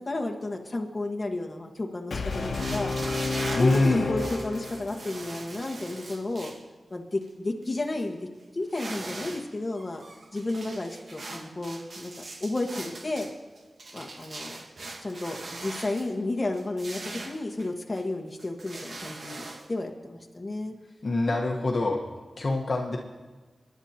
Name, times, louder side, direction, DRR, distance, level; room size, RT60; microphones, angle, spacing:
voice 1, 0.0-2.9 3.6-6.5 6.9-8.3 8.5-10.0 10.3-12.1 12.4-13.3 13.9-14.6 15.0-17.0 17.2-20.7, left 2 dB, 30° left, 1 dB, 1.5 m, -32 dB
Brass instrument, 2.1-5.2, left 3 dB, 85° left, 1.2 m, -31 dB
sound 1, 2.3-6.6 7.2-7.3 7.6-8.1 8.6-9.5 9.7-16.1 16.5-18.1 18.4-19.7, right 2 dB, 60° right, 1.3 m, -41 dB
voice 2, 3.5-4.1 21.0-22.0 22.4-23.0, left 2 dB, 50° left, 0 dB, 1.3 m, -25 dB
28.5 x 11.0 x 2.9 m, 1.3 s
wide cardioid pair, 100°, 0 cm